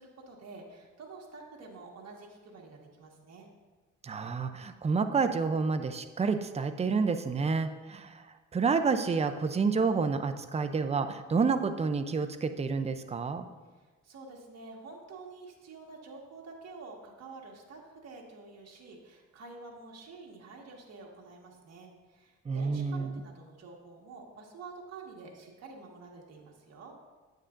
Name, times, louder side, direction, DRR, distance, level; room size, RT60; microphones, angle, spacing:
voice 1, 0.0-3.5 13.7-26.9, right 3 dB, 55° right, -1 dB, 1.7 m, -48 dB
voice 2, 4.0-8.1 8.5-13.5 22.5-23.2, right 5 dB, 20° right, 8 dB, 0.5 m, -29 dB
9.1 x 8.5 x 2.5 m, 1.3 s
cardioid pair, 90°, 30 cm